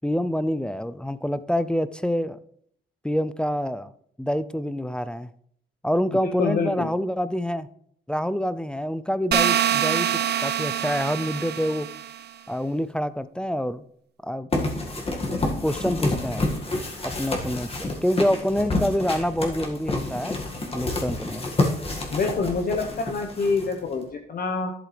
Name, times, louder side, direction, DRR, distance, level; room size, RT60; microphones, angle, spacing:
voice 1, 0.0-2.4 3.0-3.9 4.2-5.3 5.8-7.7 8.1-11.9 12.5-13.8 14.2-14.5 15.6-16.5 17.0-20.4 20.7-21.5, equal, 5° left, 14 dB, 0.4 m, -26 dB
voice 2, 6.2-6.9 22.1-24.7, left 4 dB, 50° left, 3 dB, 1.0 m, -26 dB
sound 1, 9.3-12.2, right 10 dB, 55° right, 0.6 m, -25 dB
sound 2, 14.5-24.0, left 2 dB, 30° left, 1.8 m, -29 dB
11.0 x 7.6 x 3.3 m, 0.67 s
cardioid pair, 90°, 20 cm